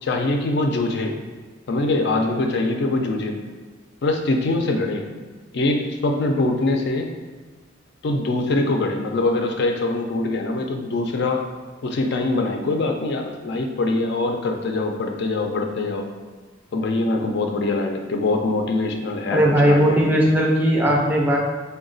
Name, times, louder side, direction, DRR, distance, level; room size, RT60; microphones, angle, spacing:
voice 1, 0.0-1.2 1.7-3.4 4.0-5.1 5.5-7.1 8.0-11.4 11.8-16.1 16.7-20.3 20.9-21.0, left 2 dB, 60° left, 3 dB, 0.4 m, -23 dB
voice 2, 19.3-21.4, equal, 10° right, -2 dB, 0.4 m, -18 dB
3.9 x 2.2 x 3.8 m, 1.3 s
head